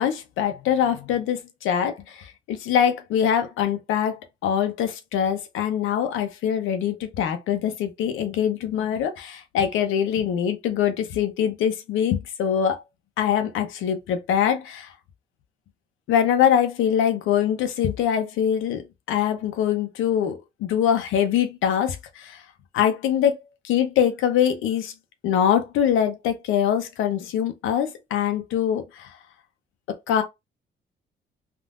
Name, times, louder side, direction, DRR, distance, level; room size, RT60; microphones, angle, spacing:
voice 1, 0.0-12.8 13.2-14.9 16.1-22.4 22.7-23.4 23.6-24.9 25.2-29.1 29.9-30.2, left 9 dB, 90° left, 0.7 m, -23 dB
3.6 x 2.6 x 2.4 m
cardioid pair, 90°, 20 cm